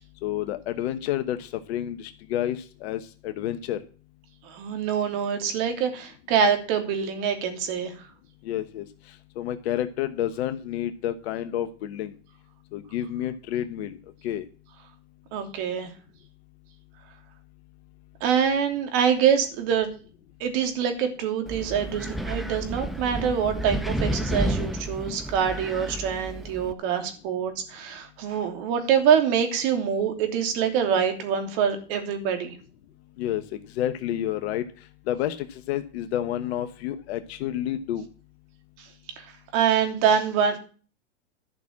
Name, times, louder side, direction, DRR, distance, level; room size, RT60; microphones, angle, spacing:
voice 1, 0.2-3.8 8.4-12.1 12.7-14.0 14.2-14.4 33.2-34.7 35.1-38.1, left 11 dB, 65° left, 10 dB, 1.2 m, -30 dB
voice 2, 4.4-7.9 15.3-15.9 18.2-19.9 20.4-32.5 39.2-39.3 39.5-40.6, right 7 dB, 55° right, 6 dB, 3.1 m, -25 dB
Wind, 21.5-26.7, right 1 dB, ahead, 1.1 m, -31 dB
11.5 x 6.1 x 8.5 m, 0.39 s
hypercardioid pair, 105°, 35 cm